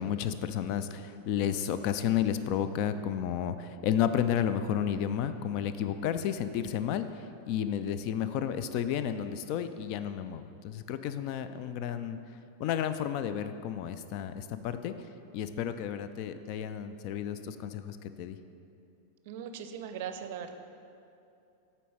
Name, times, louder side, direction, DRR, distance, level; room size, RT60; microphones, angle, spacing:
voice 1, 0.0-7.1 7.5-12.2 12.6-14.9 15.3-18.4, left 9 dB, 45° left, 11 dB, 0.4 m, -32 dB
voice 2, 19.3-20.5, right 8 dB, 50° right, 8 dB, 0.5 m, -39 dB
8.2 x 4.2 x 5.5 m, 2.7 s
figure-of-eight pair, 90°, 0 cm